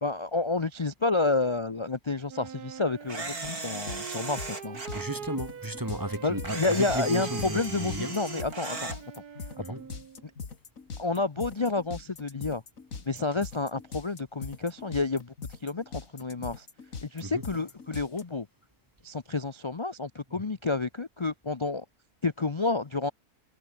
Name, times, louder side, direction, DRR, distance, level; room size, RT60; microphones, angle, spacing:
voice 1, 0.0-4.8 6.2-8.9 10.2-10.3 11.0-12.6 13.1-15.3 15.6-16.7 17.0-18.5 19.0-21.8 22.2-23.1, left 3 dB, 30° left, 0.5 m, -30 dB
Wind instrument woodwind instrument, 2.3-10.3, right 7 dB, 90° right, 2.1 m, -43 dB
Camera, 3.1-5.0 6.5-9.0, right 3 dB, 70° right, 5.2 m, -38 dB
sound 1, 3.4-18.2, left 5 dB, 60° left, 2.6 m, -41 dB
voice 2, 4.9-8.2 9.6-9.9 17.2-17.5, right 1 dB, 10° right, 4.6 m, -34 dB
omnidirectional pair, 1.6 m